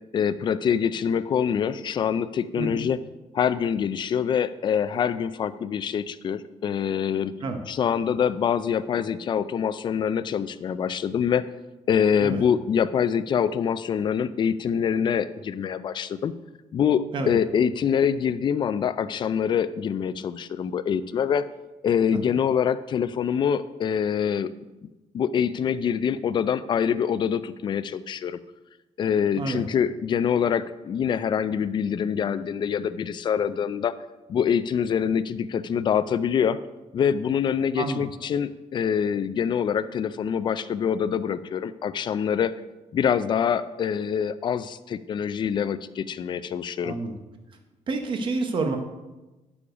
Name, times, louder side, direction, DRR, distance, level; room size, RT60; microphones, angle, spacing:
voice 1, 0.1-3.0 3.3-7.3 7.7-11.4 11.9-16.3 16.7-21.5 21.8-24.5 25.1-28.4 29.0-33.9 34.3-36.6 36.9-42.5 42.9-47.0, left 7 dB, 40° left, 13 dB, 0.4 m, -25 dB
voice 2, 37.8-38.1 46.8-47.2 47.9-48.8, right 3 dB, 40° right, 5 dB, 0.9 m, -28 dB
8.5 x 6.9 x 5.0 m, 1.1 s
cardioid pair, 170°, 13 cm